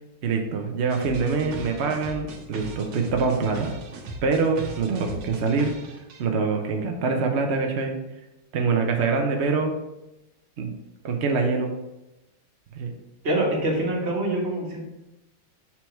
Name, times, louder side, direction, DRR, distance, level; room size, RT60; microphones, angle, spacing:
voice 1, 0.2-3.7 4.2-5.8 6.2-8.0 8.5-9.7 10.6-10.7 11.0-11.7 12.8-12.9, right 4 dB, 85° right, 3 dB, 0.6 m, -24 dB
sound 1, 0.9-6.2, right 4 dB, 70° right, 1.5 m, -38 dB
voice 2, 13.2-14.8, right 1 dB, 35° right, -2 dB, 1.6 m, -25 dB
5.7 x 4.6 x 4.5 m, 0.96 s
omnidirectional pair, 2.2 m